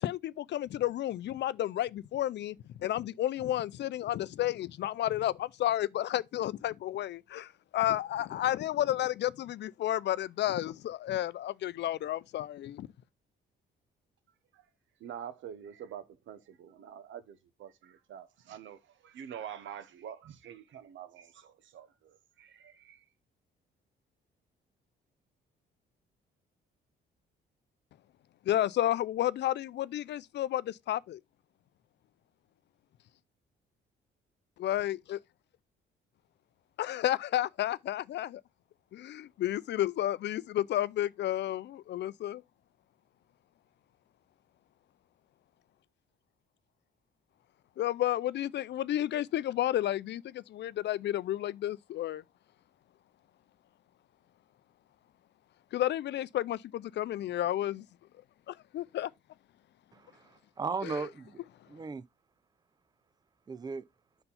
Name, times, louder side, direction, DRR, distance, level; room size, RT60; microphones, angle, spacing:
voice 1, 0.0-12.9 28.5-31.2 34.6-35.2 36.8-38.4 38.9-42.4 47.8-52.2 55.7-57.9 58.5-59.1 60.8-61.1, left 13 dB, 60° left, 0.4 m, -31 dB
voice 2, 15.0-23.0, right 9 dB, 75° right, 0.9 m, -46 dB
voice 3, 59.9-61.4 61.7-62.0 63.5-63.8, right 5 dB, 20° right, 0.4 m, -37 dB
5.4 x 4.4 x 5.5 m
cardioid pair, 90°, 20 cm